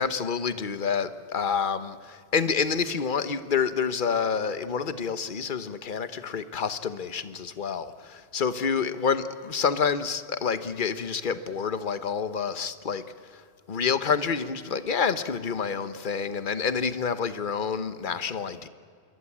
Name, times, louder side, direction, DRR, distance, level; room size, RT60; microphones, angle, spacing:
voice 1, 0.0-13.0 13.3-13.4 13.7-18.7, left 6 dB, 45° left, 12 dB, 1.2 m, -28 dB
26.5 x 22.0 x 8.6 m, 2.3 s
omnidirectional pair, 1.2 m